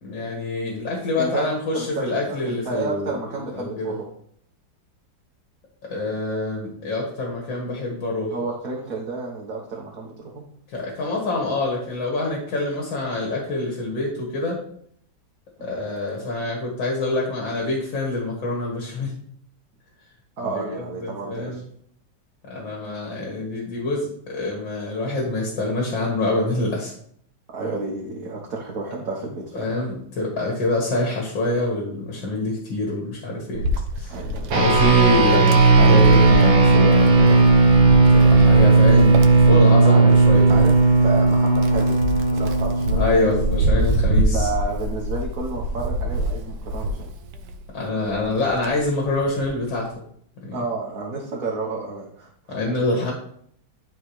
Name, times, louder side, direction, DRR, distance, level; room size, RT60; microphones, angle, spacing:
voice 1, 0.0-3.1 3.5-3.9 5.9-8.3 10.7-14.6 15.6-19.1 20.4-21.6 22.5-26.9 29.5-33.6 34.0-34.1 34.6-37.4 37.9-40.6 43.0-44.5 47.7-49.9 50.4-50.6 52.5-53.1, left 2 dB, 85° left, -2 dB, 2.6 m, -25 dB
voice 2, 1.2-1.5 1.7-4.1 8.3-10.4 15.6-15.7 20.4-21.6 27.5-29.7 34.1-34.5 39.5-40.1 40.5-42.0 42.3-43.3 44.3-47.1 50.5-52.6, right 3 dB, 50° right, -3 dB, 1.6 m, -31 dB
Wind, 33.5-47.7 48.1-49.6, right 1 dB, 70° right, 1.2 m, -26 dB
sound 1, 34.5-44.1, right 3 dB, 85° right, 1.9 m, -15 dB
11.5 x 4.8 x 3.2 m, 0.65 s
omnidirectional pair, 2.0 m